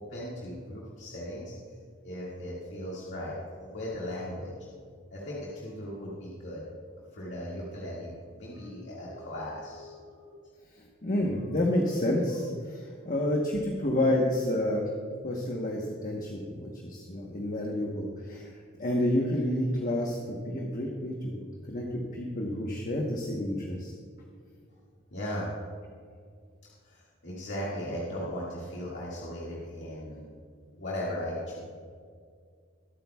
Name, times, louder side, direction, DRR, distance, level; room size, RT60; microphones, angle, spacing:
voice 1, 0.0-1.5 2.0-4.5 5.1-6.6 7.1-10.5 13.0-13.4 25.1-25.5 26.8-30.3 30.7-31.6, left 1 dB, 65° left, -6 dB, 2.0 m, -37 dB
voice 2, 11.0-14.8 15.2-18.5 18.8-23.9, left 1 dB, 45° left, -1 dB, 1.1 m, -29 dB
23.0 x 8.5 x 2.3 m, 2.1 s
head